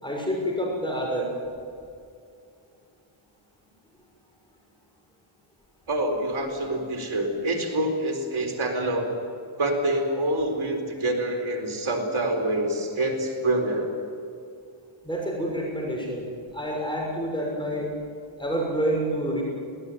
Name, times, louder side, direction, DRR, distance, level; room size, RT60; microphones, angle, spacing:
voice 1, 0.0-1.3 15.0-17.9 18.4-19.4, equal, 10° left, -2 dB, 6.5 m, -28 dB
voice 2, 5.9-9.1 9.6-13.9, right 1 dB, 85° right, 3 dB, 4.3 m, -26 dB
21.0 x 19.0 x 9.4 m, 2.4 s
cardioid pair, 60°, 47 cm